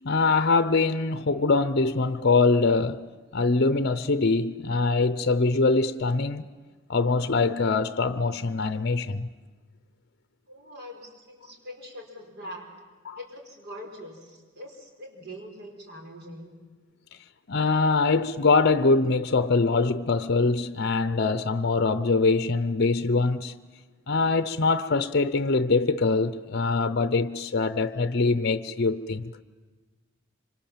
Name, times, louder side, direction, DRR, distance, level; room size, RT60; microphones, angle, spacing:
voice 1, 0.0-3.1 3.3-6.4 6.9-9.3 13.1-13.2 17.5-23.5 24.1-29.3, left 3 dB, 55° left, 0.7 m, -23 dB
voice 2, 10.5-12.7 13.1-16.5, equal, 55° right, 4.9 m, -43 dB
26.0 x 25.5 x 7.4 m
head